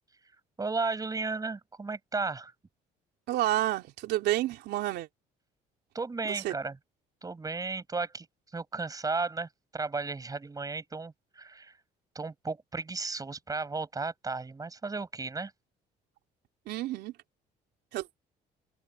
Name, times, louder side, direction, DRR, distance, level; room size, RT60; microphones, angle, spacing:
voice 1, 0.6-2.5 5.9-6.8 7.2-8.3 8.5-11.8 12.1-15.5, right 3 dB, 20° right, 7.5 m, -34 dB
voice 2, 3.3-5.1 6.2-6.5 16.7-17.1 17.9-18.1, right 15 dB, 80° right, 3.3 m, -30 dB
cardioid pair, 110°, 17 cm